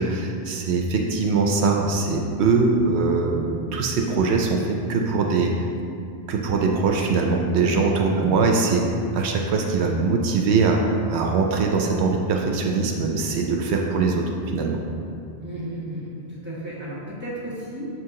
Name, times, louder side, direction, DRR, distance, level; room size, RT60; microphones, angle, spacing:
voice 1, 0.0-5.5 6.3-8.8 9.1-14.2 14.5-14.8, right 4 dB, 80° right, 1 dB, 0.9 m, -22 dB
voice 2, 15.4-17.9, right 1 dB, 10° right, -8 dB, 1.4 m, -34 dB
6.4 x 4.6 x 3.7 m, 2.5 s
omnidirectional pair, 1.1 m